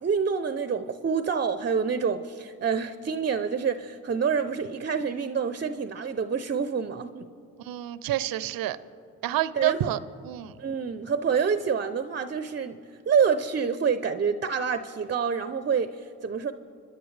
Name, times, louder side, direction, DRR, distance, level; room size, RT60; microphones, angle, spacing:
voice 1, 0.0-7.3 9.6-9.9 10.6-12.8 13.1-16.5, right 6 dB, 30° right, 11 dB, 0.6 m, -27 dB
voice 2, 7.6-8.8 9.2-10.5, right 13 dB, 80° right, 16 dB, 0.6 m, -29 dB
25.0 x 11.0 x 3.3 m, 2.6 s
supercardioid pair, 65°, 35 cm